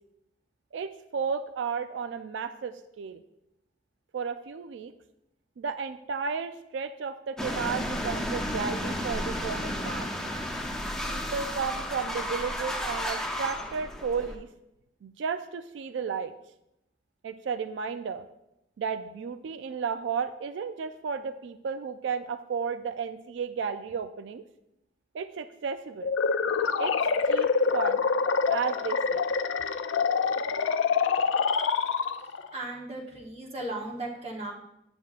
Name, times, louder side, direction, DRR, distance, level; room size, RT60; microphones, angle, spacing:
voice 1, 0.7-3.2 4.1-4.9 5.6-10.1 11.1-14.5 15.0-16.3 17.2-18.3 18.8-24.4 25.1-26.1 26.8-26.9 27.3-28.1 28.5-29.3, right 6 dB, 75° right, 10 dB, 0.3 m, -33 dB
sound 1, 7.4-14.4, left 1 dB, 5° left, 0.6 m, -32 dB
sound 2, 26.0-32.5, left 5 dB, 90° left, 0.4 m, -26 dB
voice 2, 32.5-34.5, right 2 dB, 35° right, -2 dB, 1.0 m, -36 dB
9.1 x 7.0 x 2.4 m, 0.85 s
head